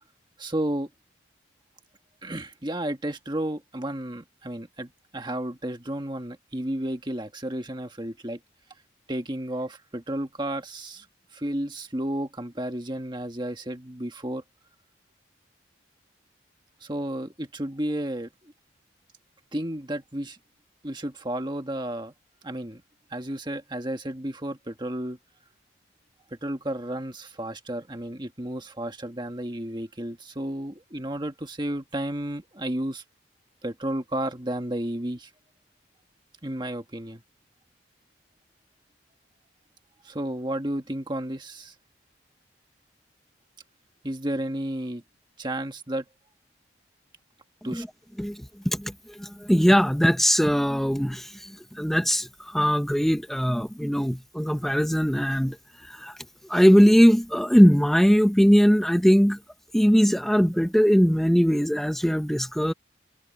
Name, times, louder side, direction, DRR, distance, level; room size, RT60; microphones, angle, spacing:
voice 1, 0.4-0.9 2.2-8.4 9.1-11.1 11.3-14.4 16.8-18.5 19.5-20.4 20.8-22.1 22.4-22.8 23.1-25.2 26.3-33.0 33.6-35.3 36.4-37.2 40.0-41.7 44.0-45.0 45.4-46.1 47.6-47.9, right 1 dB, 25° right, 1.7 m, -32 dB
voice 2, 48.2-56.2 56.4-59.4 59.7-62.7, equal, ahead, 0.7 m, -20 dB
head